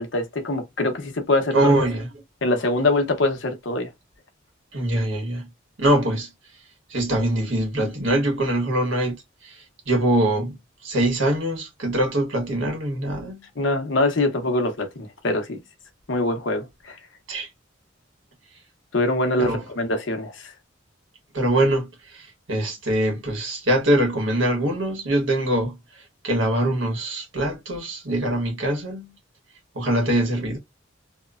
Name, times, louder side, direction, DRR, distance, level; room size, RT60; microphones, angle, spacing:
voice 1, 0.0-1.7 2.4-3.9 13.6-15.6 16.1-17.0 18.9-20.5, left 2 dB, 70° left, 0.8 m, -24 dB
voice 2, 1.5-2.1 4.7-5.5 5.8-6.3 6.9-9.6 9.9-10.6 10.8-13.4 17.3-17.5 19.4-19.6 21.3-25.8 26.2-29.1 29.7-30.6, right 1 dB, 85° right, 1.2 m, -23 dB
2.9 x 2.1 x 2.3 m
head